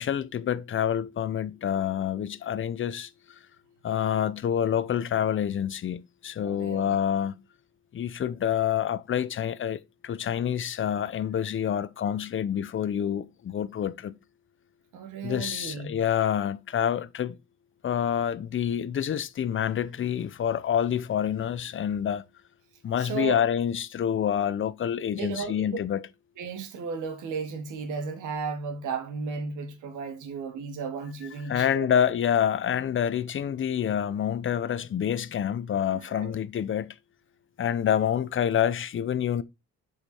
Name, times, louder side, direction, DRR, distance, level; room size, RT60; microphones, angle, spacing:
voice 1, 0.0-3.1 3.8-7.4 7.9-14.2 15.2-17.4 17.8-22.2 22.8-26.0 31.5-36.9 37.6-39.4, left 9 dB, 40° left, 0.6 m, -27 dB
voice 2, 6.4-7.0 14.9-16.0 23.0-23.4 25.2-25.7 26.4-32.1 36.1-36.4, right 5 dB, 85° right, 1.8 m, -34 dB
6.9 x 5.0 x 4.4 m
cardioid pair, 90°, 30 cm